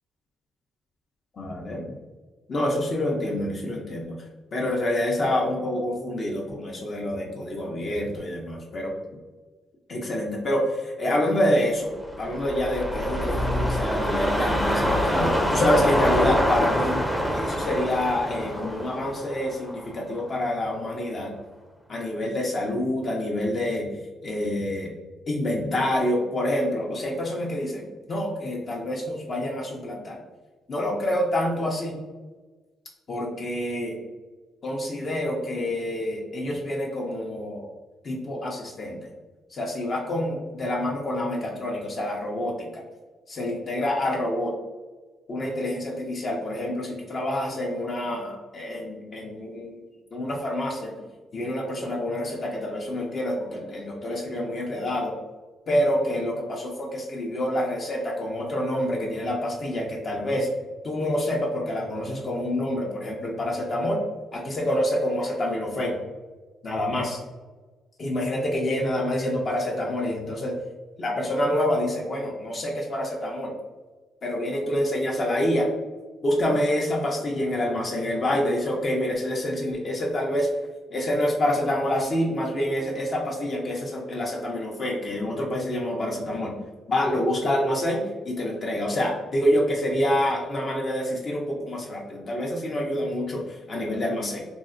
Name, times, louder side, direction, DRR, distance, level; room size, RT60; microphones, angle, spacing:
voice 1, 1.3-1.8 2.5-4.3 4.5-8.9 9.9-17.0 17.3-21.3 21.9-23.9 24.2-24.9 25.3-27.8 28.1-30.2 30.7-32.0 33.1-34.0 34.6-37.7 38.0-39.1 39.5-42.8 43.3-44.6 45.3-49.8 50.1-50.9 51.3-55.2 55.7-60.5 60.8-64.0 64.3-66.0 66.6-67.2 68.0-70.6 71.0-73.5 74.2-75.7 76.2-80.5 80.9-86.5 86.9-94.5, left 1 dB, 45° left, -2 dB, 0.6 m, -27 dB
sound 1, 11.9-20.4 20.7-20.8, equal, ahead, 0.5 m, -25 dB
3.5 x 2.1 x 2.4 m, 1.3 s
cardioid pair, 90°, 0 cm